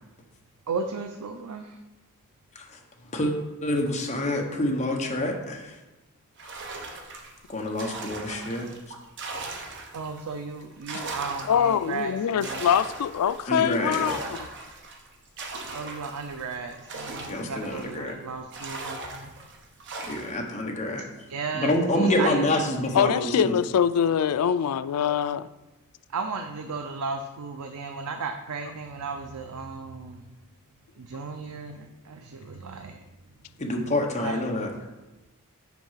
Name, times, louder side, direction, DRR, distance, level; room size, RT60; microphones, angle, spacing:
voice 1, 0.7-1.8 9.9-12.6 15.7-19.3 21.3-22.5 26.1-30.2 31.0-33.0 34.2-34.7, right 4 dB, 90° right, 6 dB, 0.5 m, -35 dB
voice 2, 3.6-5.6 7.5-8.7 13.5-14.1 17.3-18.1 20.1-21.0 21.5-23.6 33.6-34.7, left 1 dB, 30° left, 1 dB, 1.0 m, -27 dB
sound 1, 6.4-10.2 10.6-18.1 18.5-20.5, right 3 dB, 55° right, 0.9 m, -39 dB
voice 3, 11.5-14.5 22.9-25.5, left 8 dB, 85° left, 13 dB, 0.4 m, -24 dB
6.0 x 4.6 x 5.7 m, 1.1 s
head